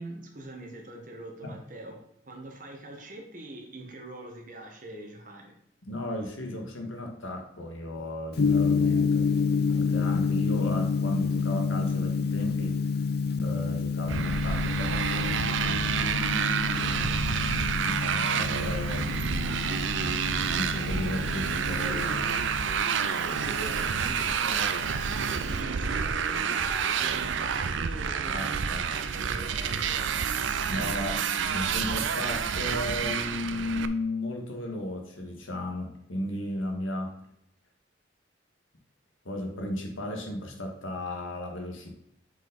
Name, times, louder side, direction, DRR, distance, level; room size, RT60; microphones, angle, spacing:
voice 1, 0.0-2.0 2.2-5.5 23.2-30.1 30.8-30.9, right 1 dB, 40° right, 1 dB, 1.6 m, -43 dB
voice 2, 5.8-9.3 9.7-12.8 13.4-17.1 17.8-19.1 20.5-22.2 28.3-28.8 30.7-37.1 39.2-41.9, left 1 dB, 85° left, 2 dB, 1.8 m, -35 dB
Gong, 8.4-25.6, left 5 dB, 50° left, 0.4 m, -29 dB
Motorcycle, 14.1-33.9, right 6 dB, 70° right, 0.5 m, -29 dB
7.3 x 5.5 x 4.0 m, 0.77 s
head